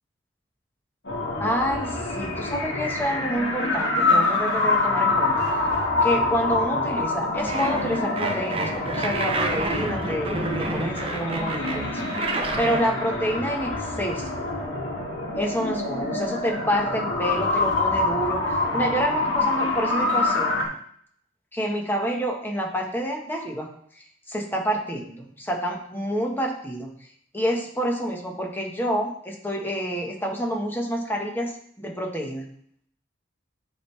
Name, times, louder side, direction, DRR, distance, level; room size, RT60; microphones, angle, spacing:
sound 1, 1.0-20.6, left 2 dB, 65° left, 2.3 m, -26 dB
voice 1, 1.4-5.5 6.0-12.1 12.6-14.4 15.4-18.4 18.7-20.6 21.5-23.7 24.3-26.9 27.3-31.5 31.8-32.5, equal, 10° left, 0 dB, 1.5 m, -28 dB
sound 2, 7.5-12.9, right 2 dB, 30° right, 0.8 m, -29 dB
10.5 x 4.7 x 3.4 m, 0.62 s
head